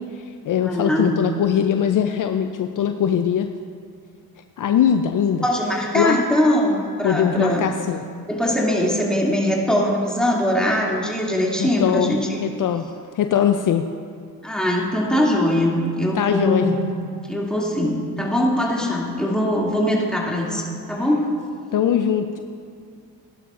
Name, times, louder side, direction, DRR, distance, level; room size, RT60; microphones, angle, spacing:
voice 1, 0.0-3.5 4.6-5.4 5.9-6.2 7.0-8.0 11.6-12.1 12.4-12.8 13.2-13.9 16.1-16.7 21.7-22.4, left 9 dB, 55° left, 7 dB, 0.6 m, -21 dB
voice 2, 0.6-1.2 5.4-7.7 8.3-12.4 14.4-16.7 17.3-21.2, left 1 dB, ahead, -4 dB, 2.6 m, -21 dB
16.5 x 11.0 x 2.5 m, 2.2 s
supercardioid pair, 70°, 39 cm